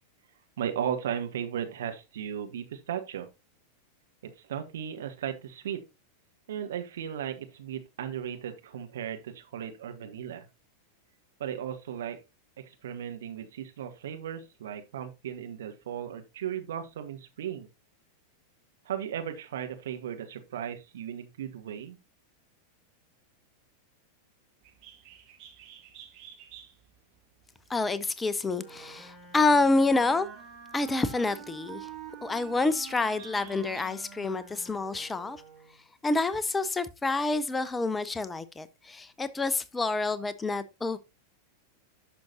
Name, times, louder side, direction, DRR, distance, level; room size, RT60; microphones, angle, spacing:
voice 1, 0.6-3.3 4.2-5.8 6.5-10.5 11.4-12.2 12.6-17.7 18.8-22.0, right 9 dB, 60° right, 1.1 m, -36 dB
Bird, 24.6-34.2, right 9 dB, 40° right, 1.8 m, -54 dB
voice 2, 27.7-30.3 30.7-31.9 32.2-35.4 36.0-41.0, left 3 dB, 10° left, 0.6 m, -28 dB
Wind instrument woodwind instrument, 28.5-35.8, right 8 dB, 25° right, 3.4 m, -47 dB
11.5 x 5.9 x 2.8 m
figure-of-eight pair, 90°, 0 cm